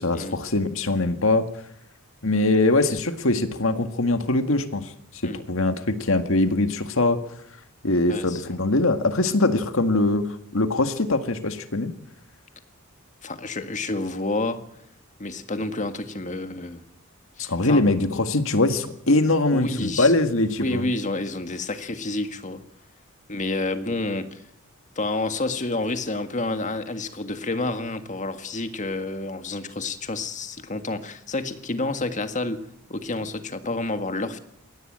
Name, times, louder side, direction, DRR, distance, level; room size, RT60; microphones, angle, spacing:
voice 1, 0.0-1.5 2.2-4.9 5.2-7.2 7.8-10.3 10.5-11.9 17.4-20.9, left 2 dB, 65° left, 2.0 m, -22 dB
voice 2, 8.1-8.6 13.2-14.7 15.2-16.8 17.4-17.8 19.5-20.1 20.6-22.7 23.3-24.4 25.0-34.4, left 2 dB, 35° left, 1.7 m, -29 dB
21.5 x 17.5 x 8.8 m
head